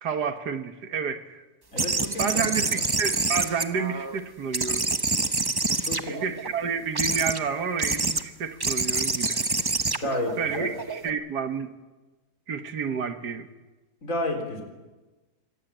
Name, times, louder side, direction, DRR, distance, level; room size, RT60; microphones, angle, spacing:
voice 1, 0.0-1.4 2.2-4.9 6.0-9.4 10.4-11.7 12.5-13.5, right 6 dB, 75° right, 1.9 m, -30 dB
voice 2, 1.7-2.8 5.8-6.3 10.0-10.7 14.0-14.6, left 1 dB, 50° left, 4.3 m, -31 dB
sound 1, 1.8-4.2 4.5-6.5 6.9-7.4 7.8-8.2 8.6-11.1, right 3 dB, 25° right, 0.5 m, -27 dB
25.0 x 16.0 x 9.1 m
omnidirectional pair, 1.8 m